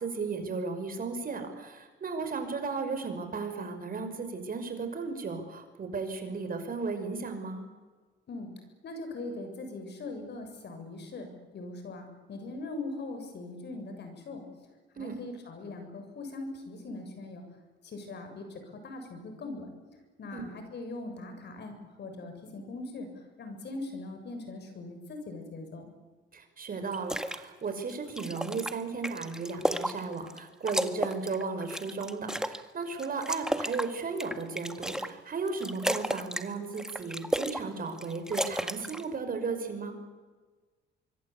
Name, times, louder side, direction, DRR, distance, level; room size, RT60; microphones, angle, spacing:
voice 1, 0.0-7.6 15.0-15.2 20.3-20.5 26.3-40.0, right 4 dB, 45° right, 7 dB, 5.7 m, -35 dB
voice 2, 8.8-14.4 14.9-17.4 17.8-19.7 20.2-23.1 23.4-25.9, left 2 dB, 60° left, 6 dB, 7.3 m, -41 dB
sound 1, 26.9-27.4 27.8-30.4 30.7-32.6 33.0-35.1 35.5-36.5 36.7-37.6 37.9-39.0, equal, 5° right, 1.8 m, -33 dB
25.0 x 23.5 x 8.6 m, 1.3 s
cardioid pair, 90°, 20 cm